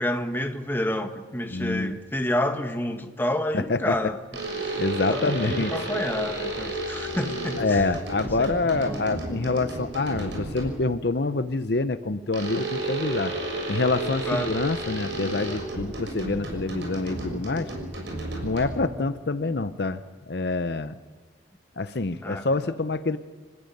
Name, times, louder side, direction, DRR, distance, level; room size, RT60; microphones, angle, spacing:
voice 1, 0.0-4.2 4.6-4.8 5.1-7.9 8.2-8.5 8.8-9.0 14.2-14.5 18.7-19.1 22.2-22.5, left 1 dB, 10° left, 1.4 m, -29 dB
voice 2, 1.5-1.9 3.5-4.0 4.8-5.9 7.6-13.3 13.7-17.7 18.4-20.0 20.3-21.0 21.8-23.2, left 3 dB, 60° left, 0.7 m, -26 dB
sound 1, 4.3-10.9 12.3-19.0, right 2 dB, 80° right, 6.0 m, -32 dB
27.0 x 14.5 x 9.3 m
head